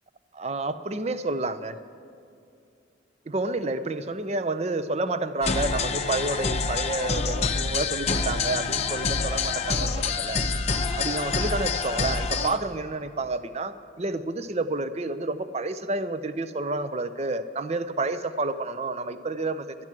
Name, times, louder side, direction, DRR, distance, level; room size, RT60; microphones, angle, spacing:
voice 1, 0.3-1.8 3.3-10.4 11.0-19.8, right 2 dB, 35° right, 12 dB, 0.5 m, -29 dB
sound 1, 5.4-12.6, left 4 dB, 35° left, 0.7 m, -27 dB
12.0 x 10.5 x 7.4 m, 2.6 s
head